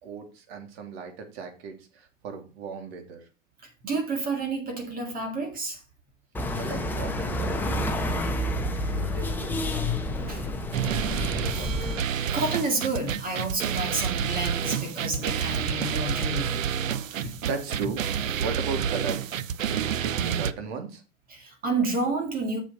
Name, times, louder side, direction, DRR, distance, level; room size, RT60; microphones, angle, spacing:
voice 1, 0.0-3.3 6.6-7.6 8.3-8.4 8.8-11.8 17.1-18.0 18.4-19.4 19.6-21.0, right 5 dB, 55° right, 2.9 m, -37 dB
voice 2, 3.8-5.8 10.1-10.6 11.5-11.9 12.3-16.7 17.2-17.4 21.3-22.6, right 3 dB, 20° right, 2.1 m, -30 dB
sound 1, 6.3-12.0, left 1 dB, 5° left, 1.0 m, -29 dB
sound 2, 10.7-20.5, right 8 dB, 85° right, 0.8 m, -29 dB
7.4 x 7.2 x 4.4 m
hypercardioid pair, 130°, 38 cm